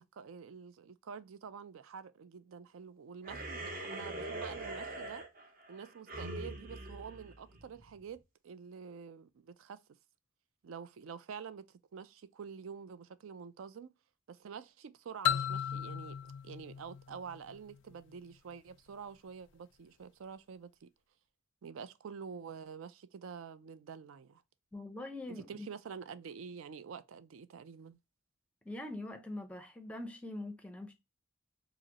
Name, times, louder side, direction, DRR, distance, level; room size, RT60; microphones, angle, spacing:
voice 1, 0.0-5.2 5.7-9.8 10.6-13.9 14.3-20.9 21.6-24.4 25.5-28.0, right 6 dB, 80° right, 0.4 m, -47 dB
sound 1, 3.2-8.0, right 2 dB, 45° right, 0.8 m, -43 dB
sound 2, 15.2-17.9, left 9 dB, 60° left, 0.3 m, -35 dB
voice 2, 24.7-25.7 28.6-30.9, left 1 dB, 5° left, 0.5 m, -43 dB
4.8 x 2.0 x 2.8 m
head